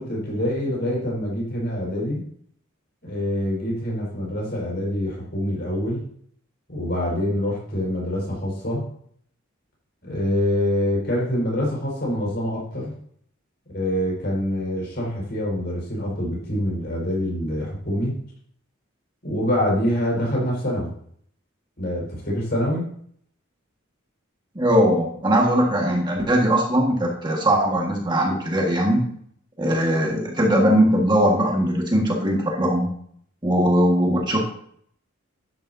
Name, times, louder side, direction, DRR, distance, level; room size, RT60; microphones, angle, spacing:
voice 1, 0.0-2.2 3.0-6.0 6.7-8.8 10.0-12.9 13.7-18.1 19.2-20.9 21.8-22.8, equal, 50° left, -3 dB, 5.0 m, -25 dB
voice 2, 24.5-29.1 29.6-32.9 33.4-34.4, equal, 20° right, -1 dB, 1.6 m, -20 dB
11.5 x 10.0 x 2.7 m, 0.64 s
head